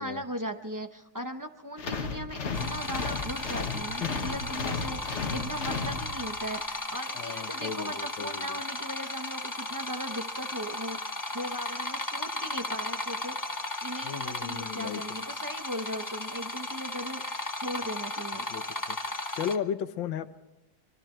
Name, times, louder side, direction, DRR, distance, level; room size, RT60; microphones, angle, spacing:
voice 1, 0.0-13.4 13.8-18.5, equal, 30° right, 6 dB, 0.3 m, -38 dB
sound 1, 1.8-6.5, left 4 dB, 40° left, 1.4 m, -34 dB
sound 2, 2.5-19.6, left 2 dB, 20° left, 0.6 m, -35 dB
voice 2, 7.1-8.6 14.0-15.2 17.8-17.9 18.3-19.0 19.3-20.3, left 8 dB, 80° left, 11 dB, 1.7 m, -35 dB
25.5 x 22.5 x 4.5 m, 0.91 s
omnidirectional pair, 2.1 m